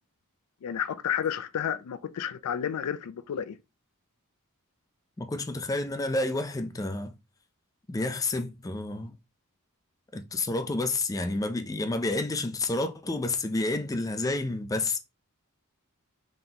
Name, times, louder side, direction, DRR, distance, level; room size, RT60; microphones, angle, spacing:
voice 1, 0.6-3.6, left 9 dB, 80° left, 0.4 m, -31 dB
voice 2, 5.2-7.1 7.9-9.2 10.1-15.0, left 2 dB, 15° left, 0.4 m, -30 dB
3.9 x 3.6 x 2.8 m
head